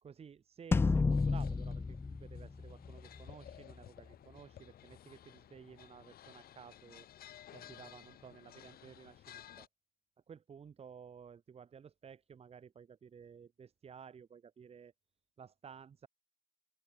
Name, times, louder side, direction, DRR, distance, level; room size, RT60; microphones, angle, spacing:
voice 1, 0.0-7.1 7.5-9.7 10.3-14.9 15.4-16.1, right 7 dB, 35° right, 2.3 m, -54 dB
sound 1, 0.7-3.3, left 4 dB, 15° left, 0.3 m, -31 dB
sound 2, 1.1-9.7, left 11 dB, 60° left, 6.5 m, -56 dB
open air
cardioid pair, 110°, 17 cm